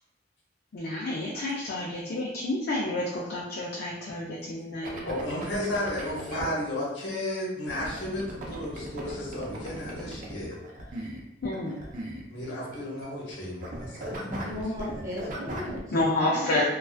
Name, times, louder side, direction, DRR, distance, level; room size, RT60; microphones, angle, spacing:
voice 1, 0.7-5.1 11.4-11.7 15.9-16.7, left 2 dB, 60° left, -4 dB, 0.4 m, -29 dB
sound 1, 4.8-6.5 7.7-13.4 13.6-15.8, right 1 dB, 50° right, 0.5 m, -38 dB
voice 2, 5.0-10.6 12.3-14.6, left 1 dB, 85° left, -5 dB, 0.8 m, -33 dB
voice 3, 14.4-16.5, left 1 dB, 20° right, -7 dB, 0.8 m, -36 dB
2.3 x 2.3 x 2.4 m, 0.91 s
head